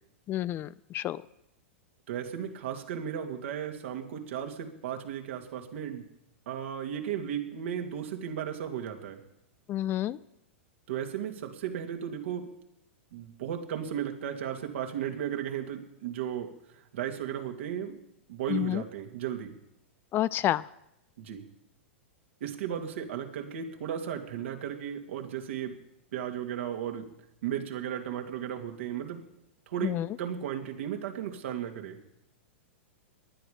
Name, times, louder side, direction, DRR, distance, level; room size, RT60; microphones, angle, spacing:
voice 1, 0.3-1.2 9.7-10.2 18.5-18.8 20.1-20.6 29.8-30.1, left 13 dB, 30° left, 18 dB, 0.4 m, -29 dB
voice 2, 2.1-6.1 6.5-9.2 10.9-12.5 13.1-16.5 16.9-18.0 18.3-19.5 21.2-21.4 22.4-25.8 26.1-27.1 27.4-29.2 29.7-32.0, right 9 dB, 70° right, 4 dB, 2.4 m, -35 dB
19.0 x 11.0 x 5.1 m, 0.82 s
hypercardioid pair, 110°, 7 cm